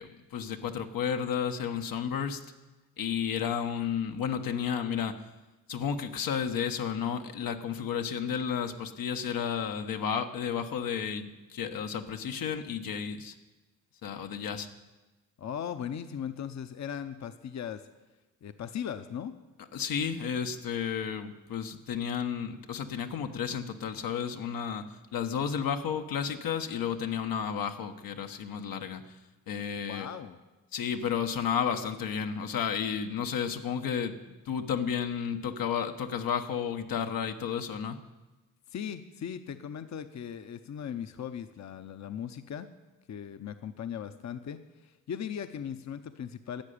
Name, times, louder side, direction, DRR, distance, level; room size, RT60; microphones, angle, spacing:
voice 1, 0.0-2.4 3.0-5.2 5.7-13.3 14.0-14.7 19.7-24.8 25.1-29.0 29.5-30.1 30.7-34.2 34.4-38.0, left 7 dB, 85° left, 6 dB, 1.1 m, -32 dB
voice 2, 15.4-17.8 18.4-19.3 29.9-30.4 38.7-42.7 43.1-46.6, left 8 dB, 55° left, 10 dB, 0.7 m, -38 dB
12.0 x 7.8 x 10.0 m, 1.1 s
cardioid pair, 80°, 34 cm